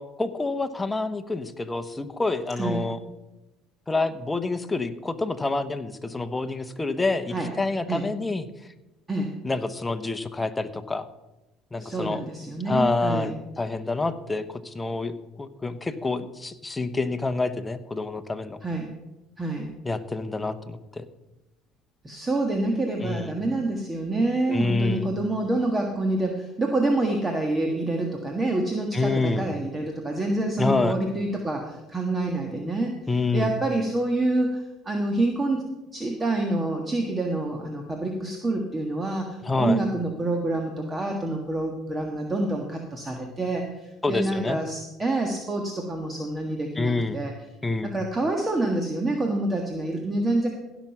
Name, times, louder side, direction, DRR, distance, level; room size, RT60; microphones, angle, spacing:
voice 1, 0.0-3.0 3.9-8.5 9.4-11.1 11.7-12.2 12.7-18.6 19.8-21.0 23.0-23.3 24.5-25.1 28.9-29.5 30.6-31.0 33.1-33.5 39.4-39.8 44.0-44.6 46.8-47.2 47.6-47.9, left 3 dB, 15° left, 10 dB, 1.0 m, -27 dB
voice 2, 2.6-2.9 7.3-7.5 7.9-8.0 9.1-9.3 11.8-13.4 18.6-18.9 19.4-19.7 22.0-32.9 33.3-35.6 35.9-47.3 47.8-50.5, right 2 dB, 20° right, 2 dB, 1.5 m, -27 dB
16.0 x 6.2 x 5.8 m, 1.0 s
supercardioid pair, 80°, 0 cm